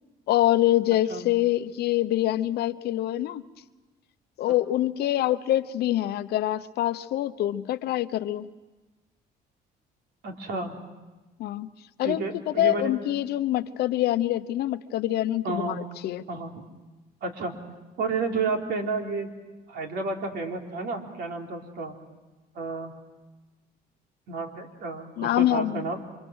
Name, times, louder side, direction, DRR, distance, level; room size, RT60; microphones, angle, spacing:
voice 1, 0.3-3.4 4.4-8.5 11.4-11.7 12.0-16.2 25.2-25.8, left 14 dB, 75° left, 12 dB, 0.9 m, -25 dB
voice 2, 10.2-10.8 12.0-12.9 15.4-15.8 16.3-16.6 17.2-17.6 18.0-19.3 19.7-21.9 22.5-23.0 24.3-26.0, right 4 dB, 75° right, 2 dB, 3.6 m, -31 dB
29.5 x 25.0 x 6.4 m, 1.2 s
cardioid pair, 110°, 17 cm